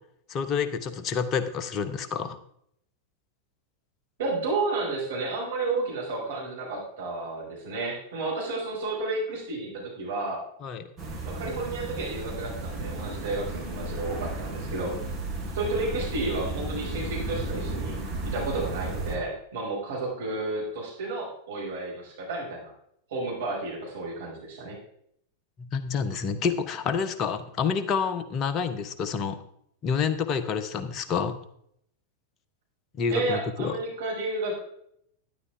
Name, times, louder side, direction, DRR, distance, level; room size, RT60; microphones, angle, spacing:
voice 1, 0.3-2.4 10.6-10.9 25.6-29.4 29.8-31.4 33.0-33.7, left 6 dB, 35° left, 10 dB, 1.0 m, -28 dB
voice 2, 4.2-10.4 11.2-14.9 15.5-22.7 23.1-24.8 33.1-34.6, right 2 dB, 60° right, -4 dB, 5.2 m, -31 dB
sound 1, 11.0-19.2, right 2 dB, 25° right, 4.1 m, -34 dB
12.0 x 11.0 x 3.4 m, 0.70 s
figure-of-eight pair, 90°, 0 cm